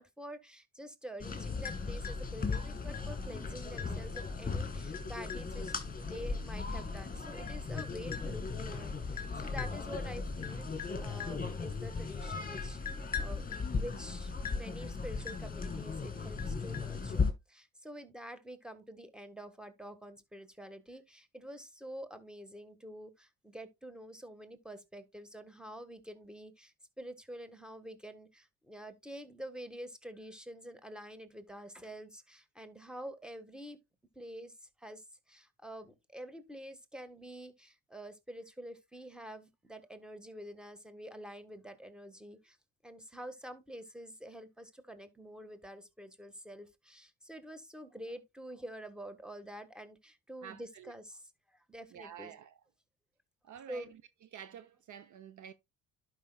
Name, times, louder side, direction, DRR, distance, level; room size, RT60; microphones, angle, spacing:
voice 1, 0.0-13.5 13.7-33.8 34.1-42.6 42.8-52.3 53.7-53.9, equal, ahead, 1.4 m, -47 dB
sound 1, 1.2-17.3, left 4 dB, 25° left, 2.1 m, -37 dB
voice 2, 50.4-50.9 51.9-52.6 53.4-54.0 54.3-55.5, right 9 dB, 50° right, 0.7 m, -49 dB
11.5 x 5.5 x 2.3 m
cardioid pair, 85°, 37 cm